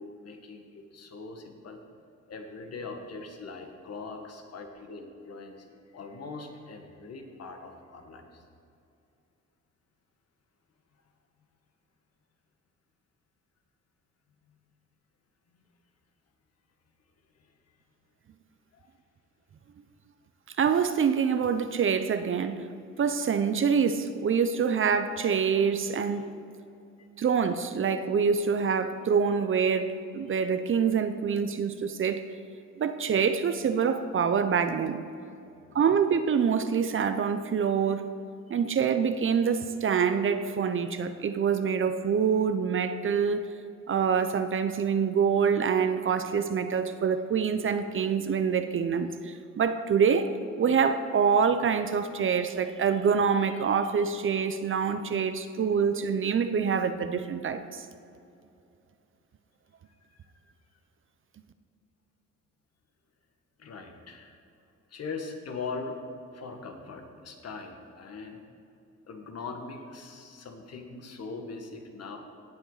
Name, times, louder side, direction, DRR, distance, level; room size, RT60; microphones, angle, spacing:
voice 1, 0.0-1.8 2.3-5.7 5.9-8.4 14.5-14.6 17.4-17.5 18.7-18.9 27.0-27.1 35.4-35.7 60.0-60.1 60.4-60.5 63.6-64.4 64.9-66.0 66.3-68.4 69.1-72.2, left 4 dB, 55° left, 4 dB, 1.7 m, -41 dB
voice 2, 20.6-22.7 23.0-26.4 27.2-32.3 32.8-35.0 35.7-38.1 38.5-43.5 43.9-50.3 50.6-57.9, right 6 dB, 45° right, 10 dB, 0.7 m, -26 dB
17.5 x 7.8 x 4.0 m, 2.6 s
cardioid pair, 90°, 30 cm